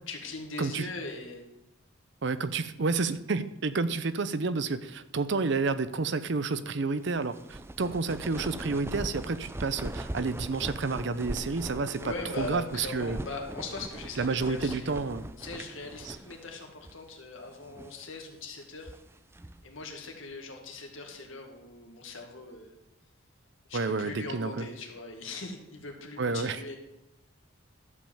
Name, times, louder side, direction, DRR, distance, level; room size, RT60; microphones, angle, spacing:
voice 1, 0.1-1.5 12.0-14.9 15.4-18.9 19.6-22.7 23.7-26.8, left 3 dB, 80° left, 2 dB, 2.0 m, -40 dB
voice 2, 0.6-0.9 2.2-13.2 14.2-15.3 16.1-16.2 23.7-24.7 26.2-26.6, right 4 dB, 60° right, 13 dB, 0.6 m, -30 dB
sound 1, 7.1-16.6 16.8-17.0 17.6-18.0 18.6-19.7, right 1 dB, 10° right, 0.4 m, -40 dB
12.0 x 5.3 x 7.2 m, 0.89 s
head